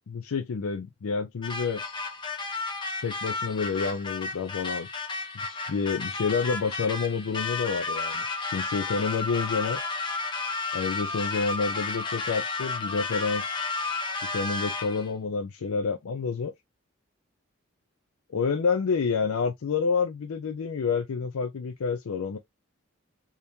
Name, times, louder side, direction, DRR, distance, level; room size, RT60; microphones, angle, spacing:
voice 1, 0.1-1.8 3.0-4.9 5.3-8.3 8.5-9.8 10.7-13.6 14.3-16.5 18.3-22.4, left 5 dB, 80° left, 0.4 m, -28 dB
sound 1, 1.4-15.1, left 3 dB, 20° left, 0.6 m, -32 dB
3.5 x 2.9 x 2.7 m
head